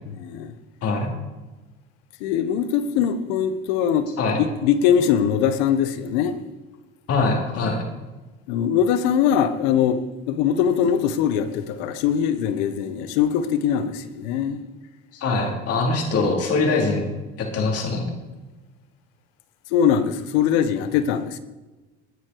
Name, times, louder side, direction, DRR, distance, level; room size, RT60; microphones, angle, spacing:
voice 1, 0.1-0.5 2.2-4.1 4.4-6.4 8.5-10.0 10.3-14.6 19.7-21.4, left 8 dB, 80° left, 11 dB, 1.4 m, -21 dB
voice 2, 0.8-1.1 4.2-4.4 7.1-7.8 15.1-17.0 17.4-18.1, left 3 dB, 50° left, 1 dB, 4.5 m, -23 dB
19.5 x 9.9 x 4.9 m, 1.2 s
supercardioid pair, 90°, 30 cm